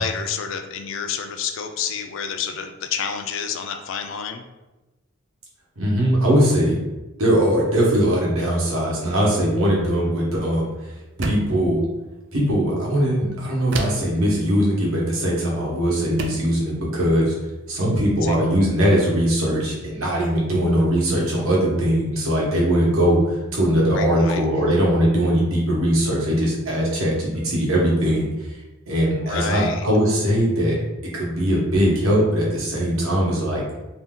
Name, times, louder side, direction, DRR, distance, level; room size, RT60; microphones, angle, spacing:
voice 1, 0.0-4.4 18.2-18.4 23.9-24.4 29.2-29.9, left 7 dB, 65° left, 7 dB, 0.3 m, -29 dB
voice 2, 5.8-6.8 7.2-10.7 11.2-11.8 12.3-17.3 17.7-28.3 28.9-30.8 31.0-33.6, equal, 85° right, -3 dB, 0.9 m, -20 dB
sound 1, 11.2-11.6 13.7-14.2 15.5-15.6 16.2-16.5, right 3 dB, 55° right, 0.3 m, -29 dB
2.6 x 2.2 x 3.5 m, 1.1 s
head